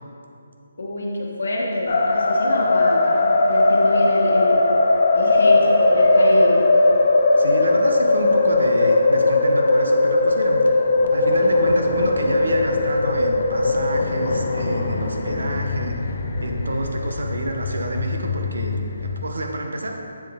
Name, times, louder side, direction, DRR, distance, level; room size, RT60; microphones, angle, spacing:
voice 1, 0.8-4.6 5.1-6.6, left 1 dB, 80° left, -3 dB, 1.1 m, -26 dB
sound 1, 1.9-19.3, left 2 dB, 50° left, 0.5 m, -19 dB
voice 2, 7.4-10.8 11.1-16.0 16.4-20.0, right 1 dB, 85° right, 2 dB, 0.8 m, -28 dB
7.3 x 3.8 x 3.5 m, 2.6 s
hypercardioid pair, 160°, 0 cm